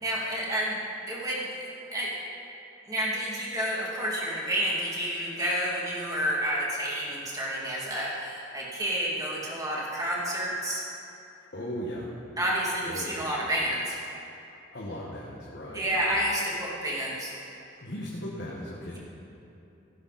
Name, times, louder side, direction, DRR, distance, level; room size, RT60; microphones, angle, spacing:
voice 1, 0.0-0.8 1.1-2.1 2.9-10.8 12.4-14.0 15.7-17.3 18.9-19.0, equal, 20° right, -5 dB, 2.6 m, -30 dB
voice 2, 11.5-12.1 12.8-13.2 14.7-16.1 17.8-19.0, equal, 60° left, -4 dB, 1.6 m, -37 dB
16.5 x 11.0 x 4.2 m, 2.9 s
head